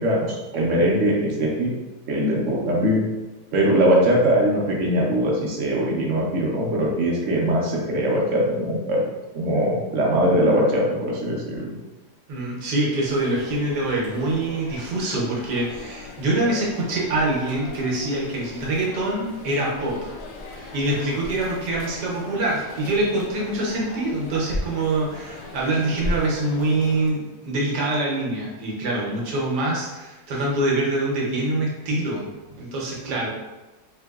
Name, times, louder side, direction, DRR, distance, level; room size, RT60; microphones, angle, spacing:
voice 1, 0.0-1.7 2.1-3.1 3.5-9.0 9.3-11.6, equal, 60° right, -2 dB, 0.9 m, -21 dB
voice 2, 12.3-20.1 20.5-33.3, right 2 dB, 75° right, -4 dB, 1.3 m, -25 dB
sound 1, 13.0-27.1, left 2 dB, 80° left, 0.6 m, -37 dB
3.7 x 2.6 x 2.3 m, 1.1 s
omnidirectional pair, 1.8 m